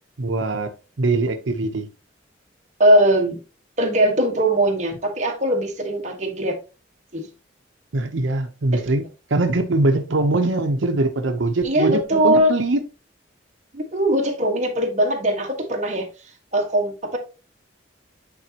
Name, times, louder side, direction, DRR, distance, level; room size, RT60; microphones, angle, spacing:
voice 1, 0.2-0.7 1.0-1.9 7.9-12.8, right 2 dB, 90° right, 0.8 m, -22 dB
voice 2, 2.8-3.4 3.8-6.6 7.1-7.3 8.7-8.8 11.6-12.5 13.7-16.0 16.5-17.2, right 1 dB, 40° right, 1.4 m, -20 dB
8.9 x 4.1 x 2.9 m
head